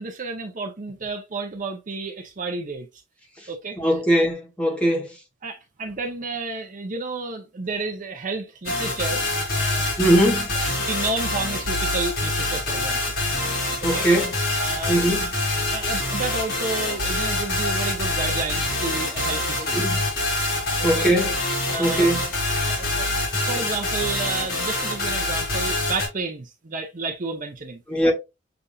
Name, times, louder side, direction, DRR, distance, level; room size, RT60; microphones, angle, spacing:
voice 1, 0.0-2.9 3.5-3.8 5.4-9.2 9.5-9.8 10.9-13.1 13.8-14.1 14.6-15.0 15.6-19.9 20.8-21.1 21.7-22.1 22.7-23.1 23.5-27.8, right 3 dB, 45° right, 0.7 m, -31 dB
voice 2, 3.8-5.1 10.0-10.5 13.8-14.3 14.9-15.3 19.7-20.0 20.8-21.3 21.8-22.2 22.8-22.9 27.9-28.1, right 1 dB, 5° left, 1.1 m, -20 dB
sound 1, 8.6-26.1, left 2 dB, 55° left, 2.6 m, -25 dB
6.9 x 2.6 x 2.3 m
head